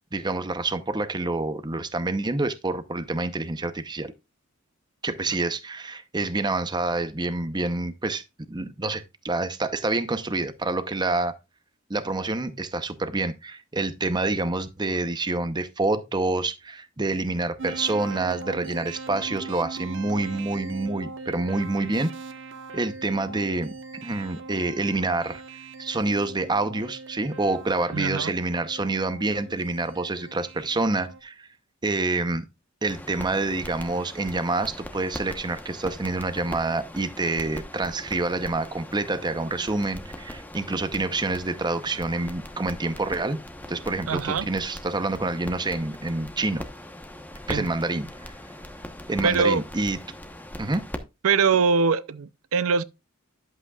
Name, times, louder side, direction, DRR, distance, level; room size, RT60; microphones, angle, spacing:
voice 1, 0.1-4.1 5.0-8.2 8.5-11.3 11.9-22.1 22.7-23.7 24.0-25.4 25.8-31.5 31.8-32.5 32.8-43.4 43.7-46.6 47.5-48.1 49.1-50.0 50.6-50.8, right 2 dB, 20° right, 0.7 m, -27 dB
sound 1, 17.6-31.2, right 4 dB, 60° right, 1.2 m, -40 dB
voice 2, 27.9-28.3 44.1-44.5 47.5-47.7 49.2-49.6 51.2-52.8, right 5 dB, 75° right, 0.5 m, -22 dB
sound 2, 32.9-51.0, left 1 dB, 10° left, 1.0 m, -40 dB
11.0 x 7.8 x 2.4 m
head